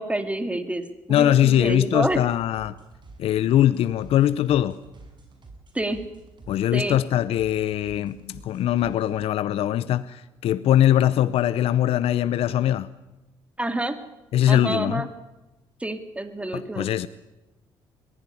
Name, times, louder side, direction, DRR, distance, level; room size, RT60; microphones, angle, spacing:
voice 1, 0.0-2.2 5.7-6.0 6.7-7.0 13.6-14.0 14.5-15.1 15.8-16.9, right 1 dB, 10° right, 2.5 m, -28 dB
voice 2, 1.1-2.8 3.2-4.8 6.5-12.9 14.3-15.1 16.5-17.1, left 11 dB, 75° left, 0.7 m, -21 dB
sound 1, 1.6-9.3, right 3 dB, 50° right, 6.3 m, -48 dB
22.0 x 16.0 x 9.9 m
supercardioid pair, 70°, 10 cm